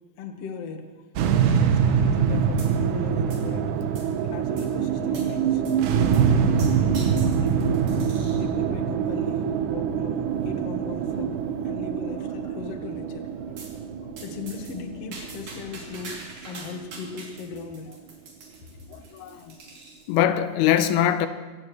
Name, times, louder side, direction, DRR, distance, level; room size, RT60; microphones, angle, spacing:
voice 1, 0.2-0.9 1.3-3.7 4.2-7.7 8.4-13.3 14.2-17.9, left 5 dB, 55° left, 1.9 m, -38 dB
sound 1, 1.2-17.6, right 7 dB, 70° right, 2.0 m, -24 dB
sound 2, 2.6-3.0 3.3-4.2 4.6-4.7 5.1-5.3 5.6-5.8 6.1-8.5 9.1-9.4 10.1-10.2 10.5-10.6 10.9-11.0 11.5-11.9 13.6-13.8 14.2-20.2, right 3 dB, 55° right, 4.3 m, -44 dB
voice 2, 18.9-19.6 20.1-21.3, left 11 dB, 90° left, 2.7 m, -23 dB
25.0 x 17.0 x 3.2 m
omnidirectional pair, 4.4 m